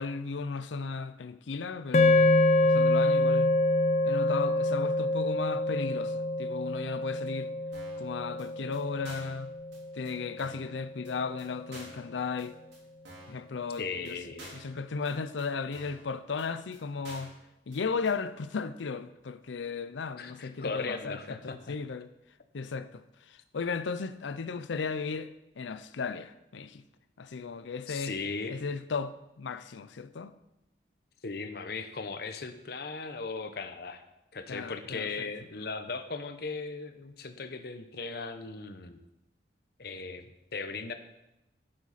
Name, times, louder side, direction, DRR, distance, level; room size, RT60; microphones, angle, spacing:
voice 1, 0.0-3.5 4.0-7.5 8.0-9.5 9.9-12.6 13.3-14.2 14.5-17.3 17.7-22.1 22.5-26.8 27.2-28.1 28.5-30.3 34.5-35.3, left 5 dB, 85° left, 0.5 m, -35 dB
sound 1, 1.9-10.3, left 2 dB, 40° left, 0.5 m, -26 dB
sound 2, 7.7-8.0 8.4-8.5 8.7-8.8 9.0-9.4 9.7-9.8 10.0-10.1 10.4-10.7 11.0-11.1 11.4-11.5 11.7-12.0 12.4-12.5 12.7-12.8 13.0-13.4 13.7-13.8 14.0-14.1 14.4-14.7 15.0-15.1 15.4-15.5 15.7-16.0 16.4-16.5 16.7-16.8 17.0-17.4 17.7-17.8 18.0-18.1, right 1 dB, 75° right, 3.8 m, -49 dB
voice 2, 13.8-14.6 20.2-21.8 27.9-28.6 31.2-34.0 34.3-39.0 39.8-40.9, left 4 dB, 55° left, 0.8 m, -38 dB
11.0 x 7.7 x 4.1 m
head